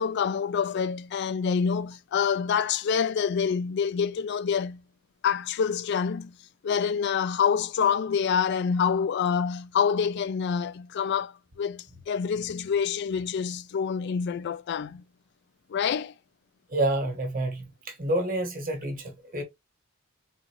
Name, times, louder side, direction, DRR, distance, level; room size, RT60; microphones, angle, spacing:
voice 1, 0.0-4.8 5.2-6.3 6.6-15.0 15.7-16.1, left 7 dB, 55° left, 0.3 m, -27 dB
voice 2, 16.7-19.4, right 1 dB, 45° right, 1.2 m, -28 dB
3.9 x 2.6 x 2.8 m
head